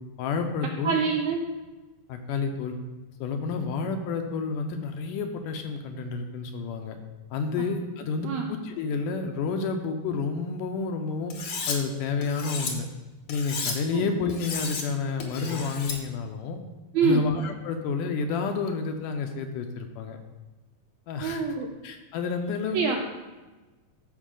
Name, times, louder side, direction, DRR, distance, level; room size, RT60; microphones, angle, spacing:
voice 1, 0.2-1.0 2.1-2.7 3.2-7.0 7.3-11.3 11.7-12.9 13.3-16.6 17.0-20.2 21.1-21.4 21.8-23.0, left 4 dB, 75° left, 5 dB, 2.1 m, -30 dB
voice 2, 0.8-1.4 8.2-8.5 13.9-14.1 16.9-17.2 21.2-21.7 22.7-23.0, right 5 dB, 80° right, 2 dB, 1.7 m, -25 dB
Cutlery silverware, 11.3-11.8 12.2-12.7 13.3-13.8 14.3-14.8 15.2-16.0, left 5 dB, 60° left, 1.4 m, -33 dB
13.5 x 5.3 x 3.8 m, 1.2 s
omnidirectional pair, 4.0 m